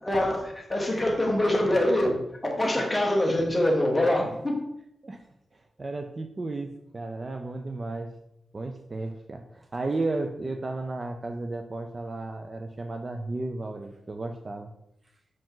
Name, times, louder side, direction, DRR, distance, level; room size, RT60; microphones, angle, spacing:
voice 1, 0.0-4.6, left 1 dB, 10° left, 0 dB, 1.2 m, -24 dB
voice 2, 3.9-4.3 5.0-5.2 5.5-8.1 8.5-14.7, right 2 dB, 30° right, 6 dB, 0.4 m, -34 dB
5.9 x 5.0 x 3.7 m, 0.79 s
wide cardioid pair, 165°, 0 cm